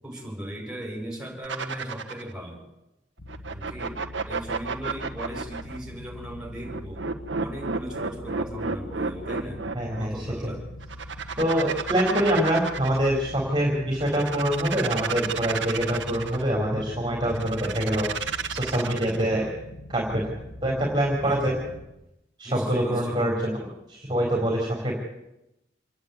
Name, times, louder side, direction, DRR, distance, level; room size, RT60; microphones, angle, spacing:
voice 1, 0.0-2.6 3.5-7.1 7.4-9.6 10.0-10.6 21.2-21.7 22.4-23.2, equal, 5° right, -1 dB, 6.8 m, -38 dB
sound 1, 1.4-2.3 3.3-5.8 6.6-10.1 10.8-13.2 13.9-16.4 17.3-19.3, right 5 dB, 85° right, 1.5 m, -31 dB
sound 2, 3.2-21.9, left 1 dB, 75° left, 2.2 m, -43 dB
voice 2, 9.7-10.5 11.4-19.5 19.9-20.3 20.6-21.5 22.4-23.5 23.9-24.9, right 1 dB, 25° right, -2 dB, 3.9 m, -25 dB
27.0 x 10.5 x 9.5 m, 0.90 s
head